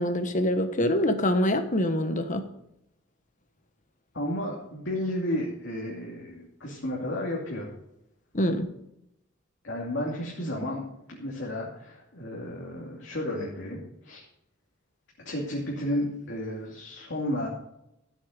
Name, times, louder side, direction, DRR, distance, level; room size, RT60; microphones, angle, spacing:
voice 1, 0.0-2.4 8.3-8.7, left 1 dB, 40° left, 8 dB, 1.3 m, -25 dB
voice 2, 4.1-7.7 9.6-10.8 11.1-14.2 15.2-17.5, left 1 dB, 65° left, -3 dB, 2.7 m, -32 dB
13.5 x 8.2 x 5.2 m, 0.82 s
head